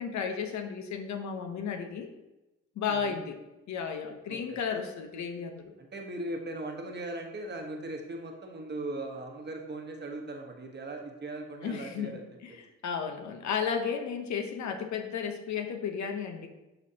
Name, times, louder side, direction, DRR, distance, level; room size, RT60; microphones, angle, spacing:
voice 1, 0.0-2.1 2.8-3.4 3.7-5.7 11.6-12.1 12.4-16.5, left 6 dB, 65° left, 6 dB, 0.9 m, -33 dB
voice 2, 5.8-12.2 12.5-12.6, right 2 dB, 35° right, 2 dB, 1.1 m, -39 dB
11.0 x 4.4 x 2.8 m, 1.0 s
cardioid pair, 90°, 30 cm